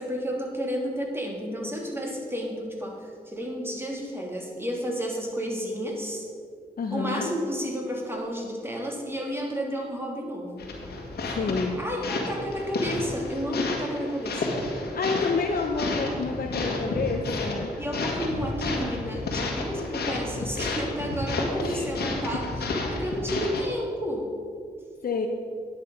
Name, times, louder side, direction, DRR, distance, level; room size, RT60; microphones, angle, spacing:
voice 1, 0.0-6.2 6.9-10.7 11.8-14.6 17.8-22.5 22.9-24.3, equal, 15° right, -1 dB, 2.9 m, -31 dB
voice 2, 6.8-7.3 11.3-11.8 14.9-17.7 21.6-21.9 25.0-25.3, left 4 dB, 65° left, 1 dB, 0.9 m, -29 dB
sound 1, 10.6-23.6, left 2 dB, 85° left, 1.7 m, -31 dB
10.0 x 7.9 x 5.4 m, 2.1 s
cardioid pair, 50°, 16 cm